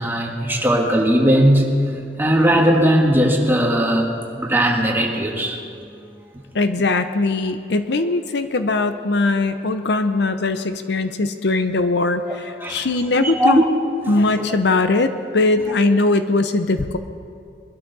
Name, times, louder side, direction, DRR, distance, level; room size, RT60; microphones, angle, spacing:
voice 1, 0.0-1.7 2.2-5.6 12.6-12.9 13.1-13.6 14.0-14.6, right 1 dB, 10° right, -1 dB, 1.8 m, -18 dB
voice 2, 6.5-13.6 14.1-17.0, left 3 dB, 70° left, 9 dB, 0.7 m, -20 dB
22.5 x 12.5 x 4.1 m, 2.4 s
head